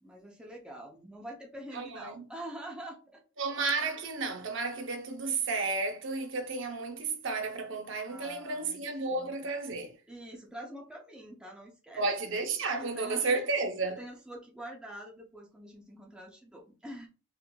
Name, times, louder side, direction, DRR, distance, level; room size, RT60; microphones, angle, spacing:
voice 1, 0.0-3.2 8.1-8.8 9.1-9.3 10.1-12.1 12.8-13.5 13.9-17.1, right 1 dB, 5° right, 0.5 m, -45 dB
voice 2, 1.7-2.2 3.4-10.0 12.0-14.0, right 3 dB, 60° right, 0.6 m, -32 dB
4.4 x 2.5 x 2.2 m
head